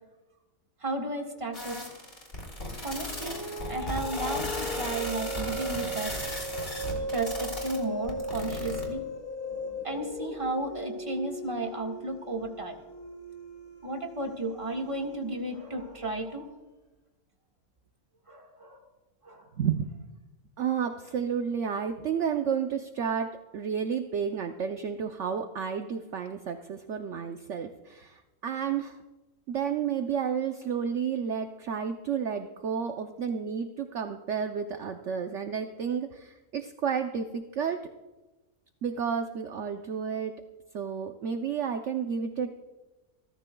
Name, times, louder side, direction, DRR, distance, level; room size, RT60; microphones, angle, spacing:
voice 1, 0.8-1.8 2.8-6.1 7.1-9.0 9.5-12.8 13.8-16.5 18.3-18.8 19.2-19.4, right 2 dB, 20° right, 1 dB, 1.7 m, -34 dB
sound 1, 1.5-8.8, left 1 dB, 40° left, 3.4 m, -36 dB
sound 2, 3.0-15.8, equal, 60° left, 3.4 m, -38 dB
voice 2, 19.6-19.9 20.6-29.0 29.5-37.8 38.8-40.3 40.7-42.6, right 7 dB, 60° right, 6 dB, 1.0 m, -31 dB
28.0 x 13.5 x 2.3 m, 1.1 s
omnidirectional pair, 1.5 m